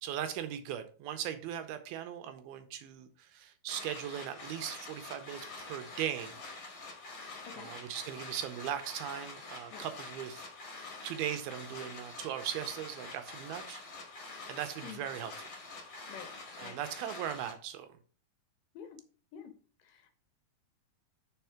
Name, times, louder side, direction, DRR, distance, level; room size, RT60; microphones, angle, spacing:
voice 1, 0.0-6.4 7.5-10.5 11.0-13.8 14.5-15.5 16.6-18.0, right 10 dB, 80° right, 9 dB, 2.4 m, -39 dB
sound 1, 3.7-17.5, left 3 dB, 50° left, 1.7 m, -46 dB
voice 2, 7.5-7.7 9.7-9.9 14.8-15.0 16.1-16.3 16.6-16.8 18.8-19.0 19.3-19.5 19.8-20.1, left 7 dB, 75° left, 7 dB, 2.1 m, -47 dB
4.9 x 4.5 x 5.7 m, 0.40 s
omnidirectional pair, 4.5 m